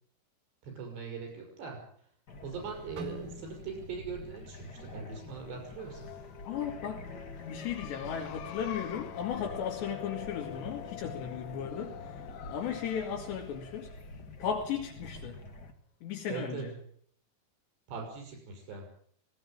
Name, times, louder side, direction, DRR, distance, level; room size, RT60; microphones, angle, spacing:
voice 1, 0.6-2.1 2.4-6.4 16.3-16.6 17.9-18.9, right 5 dB, 80° right, 1 dB, 8.1 m, -41 dB
sound 1, 2.3-15.7, left 2 dB, 35° left, 1.7 m, -47 dB
sound 2, 3.0-7.0 7.4-7.6 8.3-8.6, equal, 60° right, 3.5 m, -50 dB
sound 3, 5.7-15.2, left 11 dB, 70° left, 3.3 m, -46 dB
voice 2, 6.4-12.2 12.5-13.9 14.4-15.4 16.0-16.7, left 8 dB, 90° left, -1 dB, 4.5 m, -36 dB
19.0 x 18.5 x 8.8 m, 0.62 s
omnidirectional pair, 4.8 m